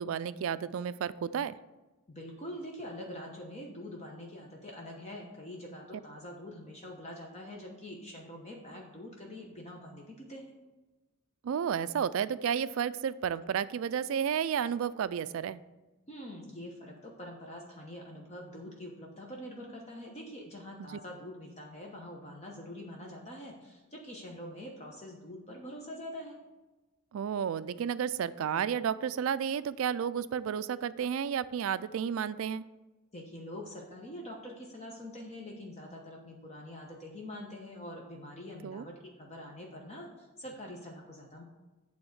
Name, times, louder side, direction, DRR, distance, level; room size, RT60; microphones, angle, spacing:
voice 1, 0.0-1.5 11.4-15.6 20.8-21.0 27.1-32.6 38.6-38.8, right 8 dB, 70° right, 15 dB, 0.3 m, -32 dB
voice 2, 2.1-10.5 16.1-26.4 33.1-41.4, left 1 dB, 30° left, -1 dB, 0.9 m, -45 dB
8.9 x 3.5 x 6.5 m, 1.1 s
head